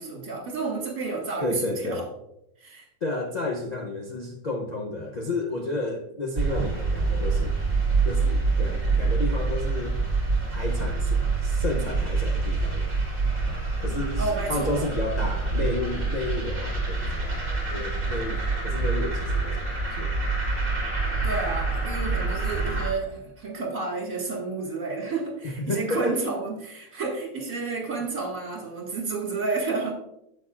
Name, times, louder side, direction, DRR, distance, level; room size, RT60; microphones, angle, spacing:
voice 1, 0.0-2.0 2.6-2.9 14.2-14.9 21.2-29.9, right 4 dB, 50° right, -1 dB, 2.5 m, -30 dB
voice 2, 1.4-2.1 3.0-7.5 8.0-10.0 10.5-12.9 13.8-20.2 25.4-26.3 28.0-28.1, left 2 dB, 75° left, 0 dB, 0.4 m, -32 dB
sound 1, 6.4-22.9, right 3 dB, 30° right, 1.9 m, -26 dB
9.8 x 7.7 x 2.5 m, 0.80 s
omnidirectional pair, 1.9 m